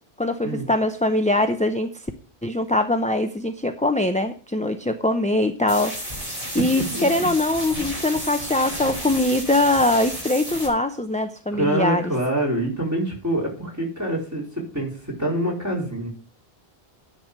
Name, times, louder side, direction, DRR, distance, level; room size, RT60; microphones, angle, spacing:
voice 1, 0.2-1.9 2.4-5.9 6.5-12.0, left 1 dB, 10° left, 7 dB, 0.5 m, -22 dB
sound 1, 5.7-10.7, equal, 35° right, 5.1 m, -32 dB
voice 2, 6.6-7.3 11.5-16.1, right 1 dB, 15° right, -3 dB, 4.2 m, -26 dB
10.5 x 5.5 x 7.5 m, 0.41 s
omnidirectional pair, 1.1 m